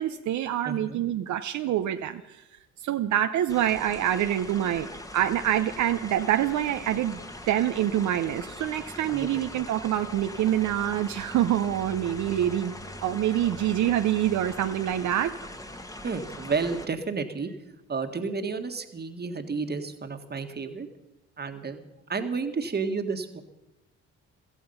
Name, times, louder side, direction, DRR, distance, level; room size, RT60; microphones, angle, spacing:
voice 1, 0.0-2.4 2.8-4.9 5.1-7.2 7.5-12.7 13.0-15.3, right 11 dB, 70° right, 8 dB, 0.7 m, -26 dB
voice 2, 0.6-1.0 9.1-9.3 16.0-17.6 17.9-20.9 21.4-21.8 22.1-23.4, right 4 dB, 35° right, 7 dB, 1.6 m, -31 dB
sound 1, 3.5-16.9, left 1 dB, 10° left, 1.5 m, -41 dB
17.0 x 14.0 x 5.6 m, 0.96 s
cardioid pair, 90°, 30 cm